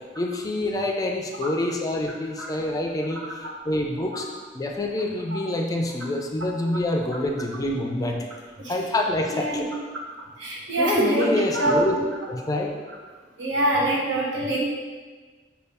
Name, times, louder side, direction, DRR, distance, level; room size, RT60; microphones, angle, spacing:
voice 1, 0.2-3.2 3.6-4.3 4.5-8.3 8.7-9.7 10.8-12.0 12.3-12.7, left 1 dB, 20° left, 2 dB, 0.4 m, -26 dB
voice 2, 9.3-9.6 10.4-11.3 11.5-11.8 13.4-14.6, right 1 dB, 85° right, -3 dB, 1.0 m, -24 dB
5.3 x 2.3 x 3.4 m, 1.4 s
head